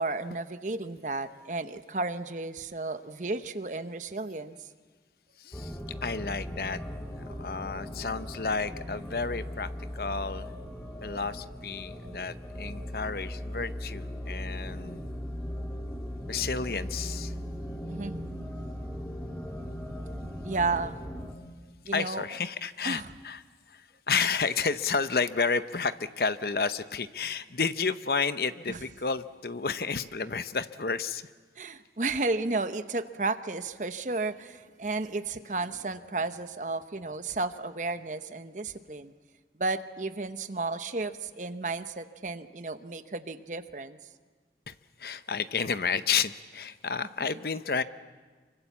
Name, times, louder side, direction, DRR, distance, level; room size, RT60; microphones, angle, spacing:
voice 1, 0.0-4.6 17.9-18.2 20.4-21.0 21.8-22.2 22.8-23.1 28.7-28.8 31.6-39.1 39.6-44.0, right 3 dB, 45° right, 10 dB, 0.9 m, -33 dB
voice 2, 5.4-6.8 7.1-10.5 11.0-15.0 16.3-17.4 21.9-23.4 23.7-31.3 44.7-47.8, left 5 dB, 55° left, 12 dB, 0.8 m, -31 dB
sound 1, 5.5-21.3, equal, 5° left, 1.7 m, -38 dB
25.5 x 24.5 x 7.2 m, 1.4 s
head